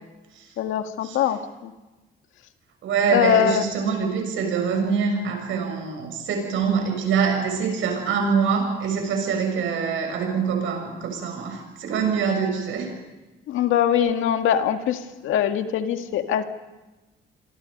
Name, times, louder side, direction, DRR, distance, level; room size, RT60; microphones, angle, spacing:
voice 1, 0.6-1.7 3.1-3.6 13.5-16.4, left 9 dB, 85° left, 6 dB, 1.9 m, -22 dB
voice 2, 2.8-12.9, right 6 dB, 80° right, 3 dB, 7.4 m, -24 dB
28.5 x 23.5 x 5.4 m, 1.1 s
cardioid pair, 90°, 20 cm